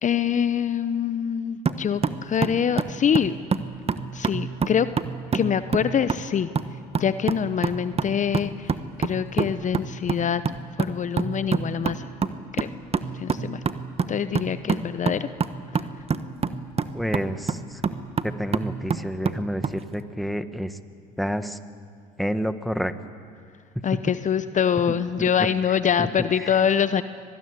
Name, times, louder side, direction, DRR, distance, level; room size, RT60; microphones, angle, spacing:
voice 1, 0.0-3.3 4.1-4.9 5.3-6.5 7.0-8.7 9.0-10.4 10.8-12.1 12.5-12.7 13.1-13.6 14.1-15.3 23.8-27.0, left 8 dB, 40° left, 12 dB, 0.9 m, -24 dB
sound 1, 1.7-19.8, right 5 dB, 30° right, 1.2 m, -28 dB
voice 2, 16.9-17.6 18.2-20.7 21.2-21.6 22.2-22.9 23.7-24.0 26.0-26.1, equal, ahead, 10 dB, 1.5 m, -28 dB
25.0 x 20.0 x 9.8 m, 2.2 s
hypercardioid pair, 70°, 19 cm